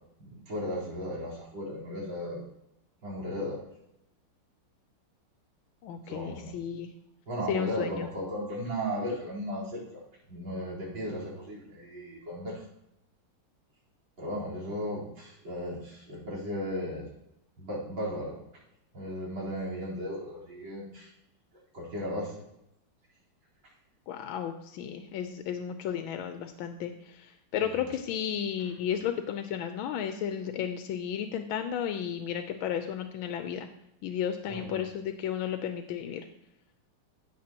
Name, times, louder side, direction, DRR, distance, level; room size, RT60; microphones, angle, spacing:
voice 1, 0.2-2.4 3.0-3.6 6.1-6.5 7.3-10.0 10.3-12.6 14.2-17.1 17.6-18.4 18.9-21.1 21.7-22.4 34.5-34.9, equal, 65° right, -4 dB, 4.8 m, -35 dB
voice 2, 5.8-6.9 7.5-8.1 24.1-33.7 34.0-36.2, left 9 dB, 80° left, 7 dB, 1.4 m, -33 dB
16.0 x 6.7 x 2.9 m, 0.83 s
omnidirectional pair, 2.3 m